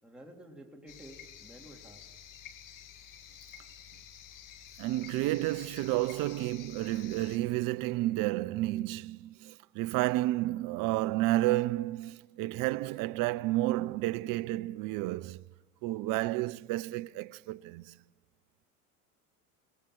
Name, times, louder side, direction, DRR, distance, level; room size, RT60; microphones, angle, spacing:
voice 1, 0.0-2.1, right 1 dB, ahead, 3.2 m, -51 dB
sound 1, 0.9-7.4, left 9 dB, 45° left, 2.2 m, -50 dB
voice 2, 4.8-15.4 15.8-18.0, right 17 dB, 45° right, 0.7 m, -31 dB
23.0 x 19.5 x 7.7 m
hypercardioid pair, 85°, 45 cm